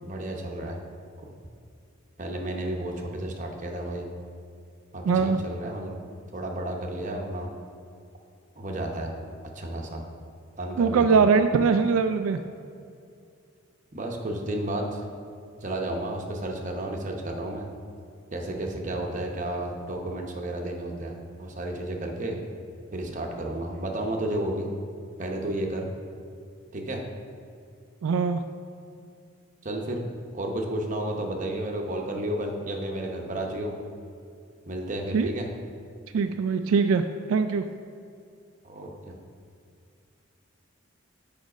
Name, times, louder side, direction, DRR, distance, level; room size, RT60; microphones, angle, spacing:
voice 1, 0.0-0.8 1.2-1.3 2.2-4.1 4.9-6.0 6.3-7.5 8.6-9.1 9.5-10.0 10.6-11.2 13.9-15.0 15.6-17.7 18.3-22.4 22.9-24.7 25.2-25.9 26.7-27.0 29.6-30.0 30.3-33.7 34.7-35.5 38.6-39.1, right 1 dB, 35° right, 1 dB, 0.8 m, -32 dB
voice 2, 5.1-5.4 10.8-12.4 28.0-28.4 35.1-35.3 36.1-37.6, right 5 dB, 75° right, 8 dB, 0.3 m, -22 dB
7.3 x 5.1 x 5.0 m, 2.4 s
head